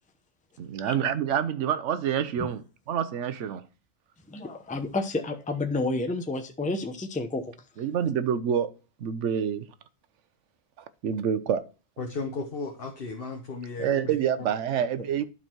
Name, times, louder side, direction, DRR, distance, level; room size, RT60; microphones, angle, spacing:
voice 1, 0.6-3.6 7.8-8.7 9.0-9.6 11.0-11.7 13.8-15.3, right 8 dB, 85° right, 1.1 m, -27 dB
voice 2, 4.3-7.5, left 2 dB, 10° left, 0.7 m, -30 dB
voice 3, 12.0-14.2, left 3 dB, 55° left, 1.2 m, -35 dB
11.5 x 4.1 x 4.4 m
omnidirectional pair, 1.2 m